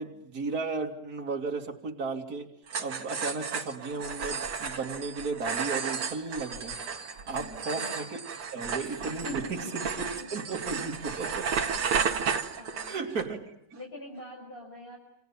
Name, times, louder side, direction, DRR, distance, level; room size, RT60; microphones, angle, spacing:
voice 1, 0.0-2.5 2.8-6.8 7.3-8.2 8.5-9.9 10.3-11.5 12.9-13.4, right 4 dB, 45° right, 0 dB, 3.0 m, -34 dB
sound 1, 2.7-13.2, right 6 dB, 90° right, 2.9 m, -33 dB
voice 2, 7.4-7.9 9.1-10.4 11.1-11.2 12.6-13.2 13.7-15.0, left 2 dB, 25° left, -1 dB, 6.4 m, -44 dB
29.0 x 28.5 x 7.2 m, 0.76 s
omnidirectional pair, 2.4 m